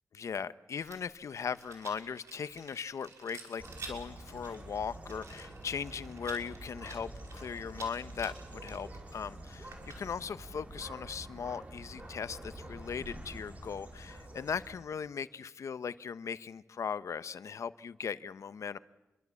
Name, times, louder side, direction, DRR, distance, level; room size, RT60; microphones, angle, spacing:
voice 1, 0.1-18.8, left 6 dB, 85° left, 14 dB, 1.0 m, -39 dB
Rattle, 0.8-10.4, right 4 dB, 80° right, 5.8 m, -51 dB
sound 1, 3.6-14.9, right 1 dB, 30° right, 4.9 m, -47 dB
28.0 x 23.0 x 8.5 m, 1.0 s
wide cardioid pair, 130°, 5 cm